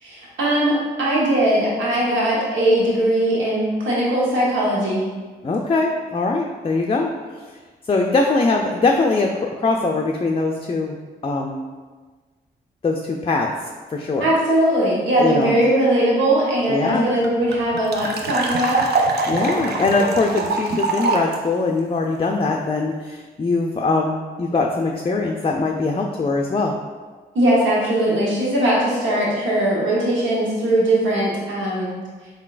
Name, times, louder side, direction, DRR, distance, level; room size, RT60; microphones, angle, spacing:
voice 1, 0.0-5.0 14.2-18.8 27.3-31.9, right 1 dB, 80° right, -6 dB, 1.1 m, -20 dB
voice 2, 5.4-7.1 7.9-11.0 11.2-11.6 12.8-13.5 13.9-14.3 15.2-15.5 16.7-17.0 19.3-26.7, left 3 dB, 30° left, 1 dB, 0.4 m, -21 dB
sound 1, 16.6-16.7 16.9-17.0 17.2-21.3, right 3 dB, 60° right, 0.6 m, -23 dB
3.9 x 3.7 x 2.5 m, 1.4 s
supercardioid pair, 40°, 19 cm